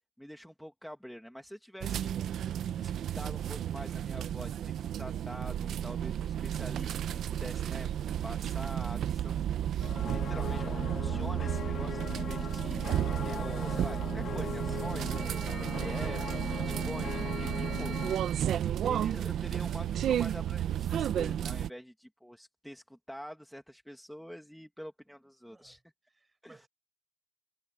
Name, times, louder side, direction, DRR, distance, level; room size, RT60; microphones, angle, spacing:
voice 1, 0.2-2.1 2.8-7.9 8.2-9.5 10.0-12.8 13.2-15.5 15.8-18.4 18.8-25.8 26.4-26.7, equal, ahead, 1.9 m, -46 dB
sound 1, 1.8-21.7, right 10 dB, 70° right, 0.7 m, -32 dB
voice 2, 7.6-7.9 25.4-25.8 26.1-26.7, right 3 dB, 20° right, 4.6 m, -60 dB
sound 2, 9.8-18.2, left 8 dB, 50° left, 0.6 m, -40 dB
cardioid pair, 150°, 0 cm